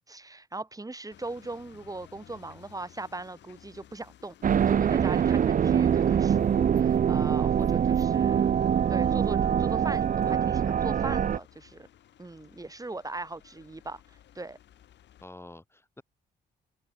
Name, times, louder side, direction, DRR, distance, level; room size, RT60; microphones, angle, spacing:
voice 1, 0.1-8.6 8.9-11.9 12.2-14.6, right 2 dB, 20° right, 4.2 m, -40 dB
sound 1, 1.1-15.2, left 11 dB, 70° left, 7.0 m, -56 dB
sound 2, 4.4-11.4, right 8 dB, 45° right, 0.8 m, -24 dB
voice 2, 15.2-16.0, left 1 dB, 15° left, 5.9 m, -48 dB
supercardioid pair, 65°, 19 cm